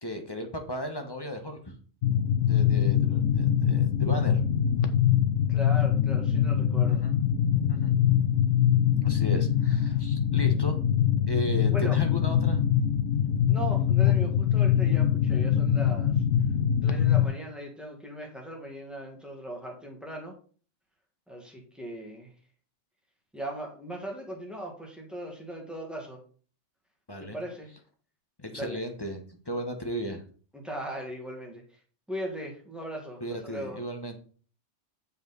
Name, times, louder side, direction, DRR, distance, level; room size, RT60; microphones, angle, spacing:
voice 1, 0.0-1.8 2.5-4.4 6.9-7.1 7.7-7.9 9.0-10.8 11.3-12.7 13.2-13.3 14.0-14.1 27.1-27.4 28.4-29.2 29.5-30.2 33.2-34.2, equal, 20° left, 4 dB, 1.0 m, -35 dB
sound 1, 2.0-17.2, left 9 dB, 80° left, 1.1 m, -23 dB
voice 2, 5.5-7.1 11.7-12.0 13.5-16.1 16.8-20.3 21.3-22.3 23.3-26.2 27.2-27.7 28.5-28.8 30.5-31.8 32.1-33.8, right 1 dB, ahead, 0 dB, 1.8 m, -38 dB
7.0 x 5.6 x 4.0 m, 0.42 s
omnidirectional pair, 1.3 m